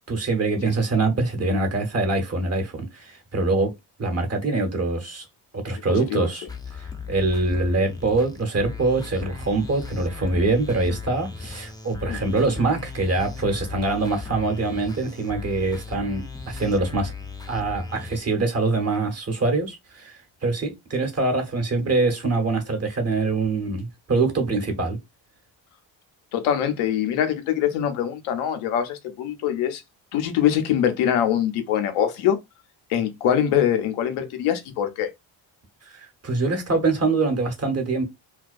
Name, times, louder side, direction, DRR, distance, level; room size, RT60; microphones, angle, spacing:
voice 1, 0.1-3.7 4.0-5.2 5.5-6.5 7.1-17.1 17.5-25.0 35.9-38.0, right 3 dB, 30° right, 1.1 m, -24 dB
sound 1, 6.5-18.2, left 5 dB, 10° left, 0.5 m, -37 dB
voice 2, 26.3-29.8 30.1-32.4 32.9-35.1, left 9 dB, 85° left, 0.7 m, -23 dB
2.3 x 2.2 x 2.5 m
supercardioid pair, 60°, 48 cm